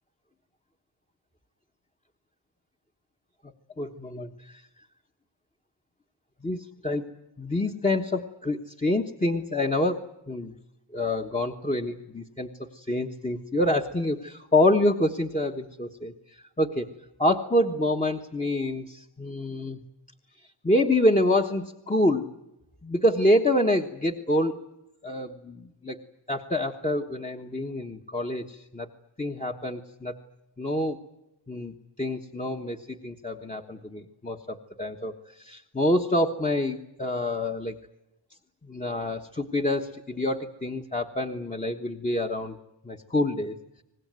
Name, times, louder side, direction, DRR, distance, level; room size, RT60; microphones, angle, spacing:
voice 1, 3.8-4.7 6.4-7.1 7.4-10.6 10.9-16.9 17.2-19.8 20.4-22.3 22.8-24.6 25.0-26.0 26.3-28.9 29.2-30.2 30.6-31.0 31.5-37.8 38.6-42.6 42.8-43.8, left 1 dB, 15° left, 2 dB, 1.2 m, -27 dB
25.0 x 20.0 x 9.3 m, 0.92 s
wide cardioid pair, 140°, 48 cm